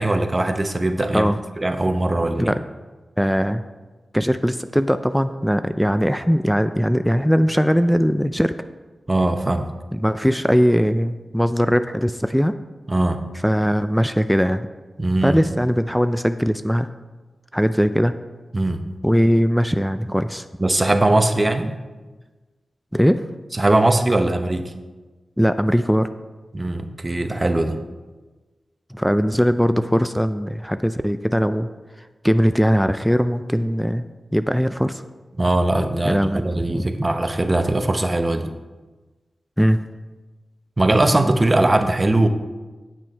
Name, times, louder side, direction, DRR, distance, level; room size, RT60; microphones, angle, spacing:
voice 1, 0.0-2.5 9.1-9.7 12.9-13.3 15.0-15.4 18.5-18.9 20.6-21.8 23.5-24.7 26.5-27.8 35.4-38.5 40.8-42.3, right 2 dB, 30° right, 7 dB, 0.8 m, -20 dB
voice 2, 3.2-3.6 4.1-8.5 9.9-12.5 13.4-14.7 15.2-16.9 17.5-18.2 19.0-20.5 22.9-23.2 25.4-26.1 28.9-31.7 32.2-35.0 36.0-36.9 39.6-39.8, equal, ahead, 11 dB, 0.4 m, -20 dB
8.9 x 6.0 x 4.6 m, 1.3 s
cardioid pair, 45°, 0 cm